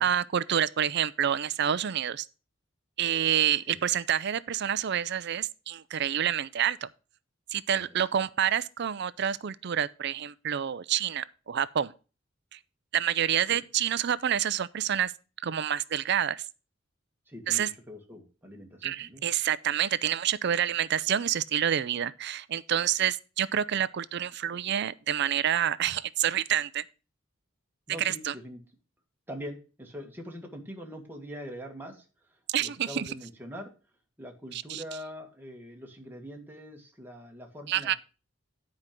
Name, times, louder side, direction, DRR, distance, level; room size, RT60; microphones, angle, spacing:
voice 1, 0.0-2.3 3.0-6.9 7.5-11.9 12.5-12.6 12.9-15.1 15.4-16.4 17.5-17.7 18.8-26.8 28.0-28.3 32.5-33.1 34.5-34.8 37.7-37.9, right 9 dB, 60° right, 0.5 m, -28 dB
voice 2, 17.3-19.3 27.9-28.6 29.3-33.7 34.2-38.0, equal, 10° right, 1.8 m, -43 dB
9.8 x 5.2 x 5.9 m
head